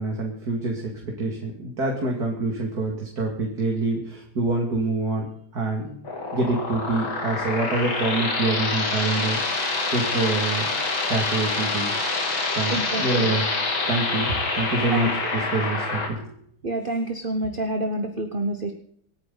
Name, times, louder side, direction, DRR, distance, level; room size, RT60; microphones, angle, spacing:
voice 1, 0.0-5.3 5.5-6.0 6.3-10.7 11.1-12.1 12.5-13.4 13.9-16.3, right 3 dB, 45° right, 0 dB, 2.8 m, -26 dB
sound 1, 6.0-16.1, left 3 dB, 70° left, 3.5 m, -26 dB
voice 2, 12.7-13.3 14.9-15.1 16.6-18.7, right 2 dB, 30° right, 6 dB, 1.1 m, -28 dB
26.5 x 9.6 x 4.0 m, 0.63 s
omnidirectional pair, 2.3 m